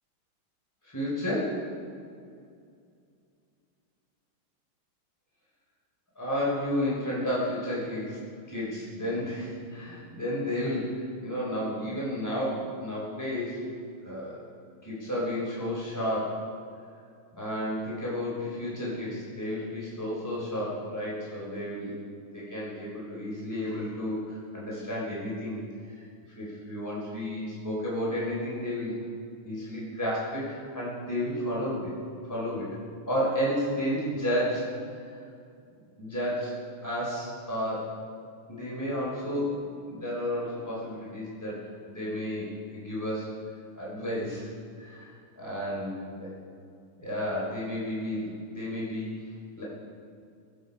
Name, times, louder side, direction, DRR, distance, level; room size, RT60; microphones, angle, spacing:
voice 1, 0.8-1.6 6.2-8.2 8.5-13.6 14.0-14.4 14.8-16.5 17.3-22.0 22.3-25.6 25.9-26.0 26.4-28.9 29.4-32.0 32.3-32.7 33.1-34.7 35.1-35.2 36.0-36.6 36.8-37.9 38.5-41.6 41.9-43.3 43.8-44.5 44.8-46.4 47.0-49.6, equal, 10° left, -6 dB, 3.6 m, -32 dB
19.5 x 8.4 x 5.4 m, 2.4 s
omnidirectional pair, 2.4 m